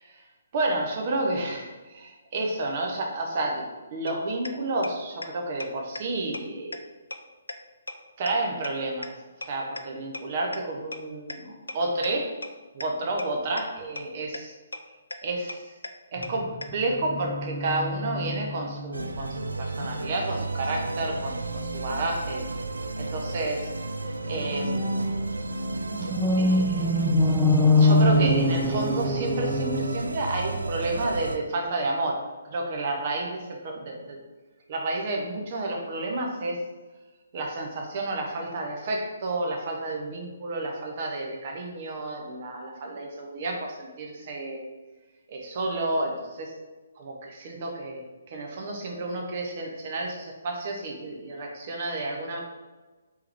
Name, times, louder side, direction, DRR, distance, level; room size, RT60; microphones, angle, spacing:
voice 1, 0.5-6.8 8.2-9.1 9.4-12.3 12.7-14.5 15.2-15.7 16.1-22.5 23.0-23.7 24.3-25.0 26.4-26.8 27.8-34.2 34.7-36.6 37.3-44.6 45.3-46.5 47.0-52.4, right 2 dB, 45° right, 0 dB, 0.7 m, -31 dB
sound 1, 4.1-4.2 4.5-4.6 4.8-4.9 5.2-5.3 5.6-5.7 6.0-6.1 6.3-6.4 6.7-6.8 7.1-7.2 7.5-7.6 7.9-8.0 8.3-8.4 8.6-8.7 9.0-9.1 9.4-9.5 9.8-9.9 10.1-10.2 10.5-10.6 10.9-11.0 11.3-11.4 11.7-11.8 12.0-12.1 12.4-12.5 12.8-12.9 13.2-13.3 13.6-13.7 14.0-14.1 14.3-14.4 14.7-14.8 15.1-15.2 15.5-15.6 15.8-15.9 16.2-16.3 16.6-16.7, left 2 dB, 90° left, 0.3 m, -34 dB
sound 2, 16.2-19.0 19.2-19.5 19.8-20.1 21.5-21.9 24.3-29.9, left 1 dB, 5° right, 0.4 m, -25 dB
sound 3, 18.9-31.4, right 2 dB, 85° right, 0.3 m, -33 dB
3.4 x 3.1 x 3.4 m, 1.2 s
figure-of-eight pair, 140°, 0 cm